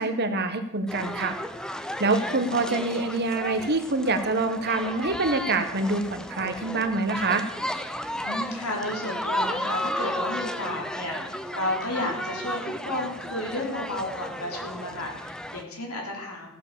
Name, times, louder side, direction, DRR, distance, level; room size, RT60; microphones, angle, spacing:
voice 1, 0.0-1.4 2.0-7.4, right 3 dB, 50° right, 8 dB, 1.3 m, -26 dB
sound 1, 0.9-15.6, left 1 dB, 5° left, 0.7 m, -33 dB
voice 2, 2.1-2.5 8.1-16.5, left 1 dB, 85° left, 1 dB, 3.8 m, -32 dB
15.5 x 7.8 x 7.0 m, 0.87 s
head